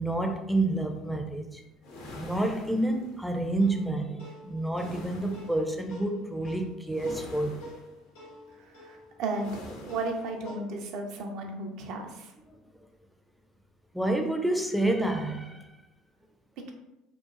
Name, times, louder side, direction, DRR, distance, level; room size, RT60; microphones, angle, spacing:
voice 1, 0.0-1.6 2.2-7.7 12.5-12.6 13.9-15.7, right 2 dB, ahead, 0.4 m, -29 dB
sound 1, 1.8-3.4 4.7-5.7 6.9-8.0 9.4-10.4, left 1 dB, 65° left, 0.6 m, -45 dB
sound 2, 3.6-10.6, equal, 85° left, 1.3 m, -48 dB
voice 2, 8.6-12.3, right 2 dB, 60° right, 0.4 m, -34 dB
2.9 x 2.1 x 2.4 m
hypercardioid pair, 70°, 0 cm